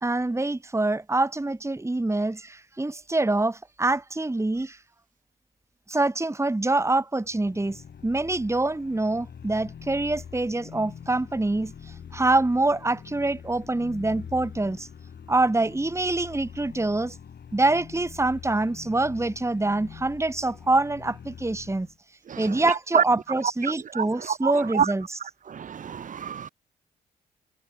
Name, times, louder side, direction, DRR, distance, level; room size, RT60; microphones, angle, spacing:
voice 1, 0.0-4.8 5.9-14.9 15.3-17.2 17.5-21.9 22.3-25.2, right 2 dB, 15° right, 1.5 m, -25 dB
sound 1, 7.2-22.0, left 7 dB, 55° left, 3.6 m, -44 dB
voice 2, 23.9-24.9 25.5-26.5, right 8 dB, 40° right, 0.6 m, -26 dB
hypercardioid pair, 45°, 20 cm